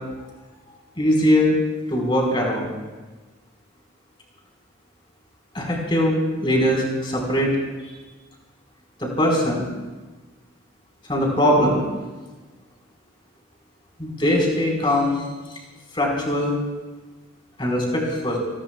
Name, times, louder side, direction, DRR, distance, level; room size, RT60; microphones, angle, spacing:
voice 1, 1.0-1.6 1.9-2.7 5.5-7.6 7.8-7.9 9.0-9.6 11.1-11.8 14.0-15.1 15.9-16.5 17.6-18.4, left 1 dB, 25° left, -1 dB, 4.6 m, -21 dB
27.5 x 20.0 x 2.4 m, 1.3 s
head